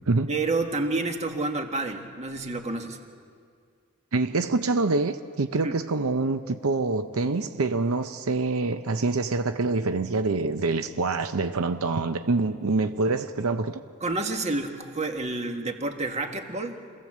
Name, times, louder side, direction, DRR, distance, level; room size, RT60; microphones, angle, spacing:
voice 1, 0.3-3.0 5.6-5.8 14.0-16.8, right 2 dB, 30° right, 1.7 m, -29 dB
voice 2, 4.1-13.8, right 3 dB, 85° right, 0.7 m, -26 dB
26.5 x 17.0 x 7.4 m
head